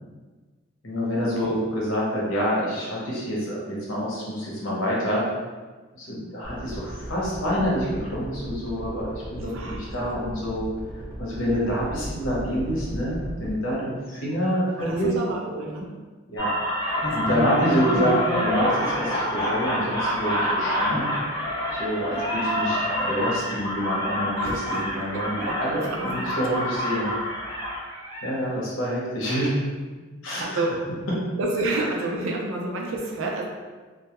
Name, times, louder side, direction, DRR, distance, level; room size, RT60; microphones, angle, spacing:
voice 1, 0.8-5.3 5.9-10.7 11.2-15.1 16.3-16.5 17.1-21.1 21.7-27.1 28.2-29.5 30.2-30.4, equal, 75° left, -6 dB, 0.8 m, -27 dB
sound 1, 6.4-13.5, equal, 15° right, 1.1 m, -37 dB
voice 2, 9.5-9.8 14.8-15.9 17.0-17.2 22.1-22.3 24.4-24.8 25.1-25.6 25.8-26.0 30.4-30.7 31.4-33.5, right 2 dB, 75° right, 0 dB, 0.5 m, -29 dB
sound 2, 16.4-28.3, equal, 20° left, 0.5 m, -27 dB
2.2 x 2.1 x 2.8 m, 1.4 s
head